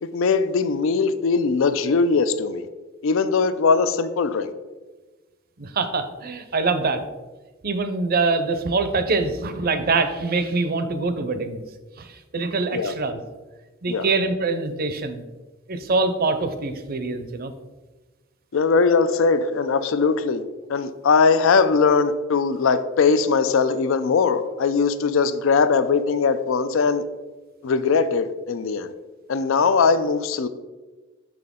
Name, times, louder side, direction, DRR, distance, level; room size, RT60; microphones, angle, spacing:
voice 1, 0.0-2.7 3.0-4.5 12.7-12.9 13.9-14.1 18.5-20.4 20.7-27.0 27.6-28.9 29.3-30.5, left 5 dB, 70° left, 12 dB, 0.4 m, -20 dB
voice 2, 5.6-7.0 7.6-11.6 12.0-13.2 13.8-15.2 15.7-17.5, right 3 dB, 50° right, 9 dB, 0.6 m, -24 dB
6.5 x 6.0 x 3.6 m, 1.2 s
head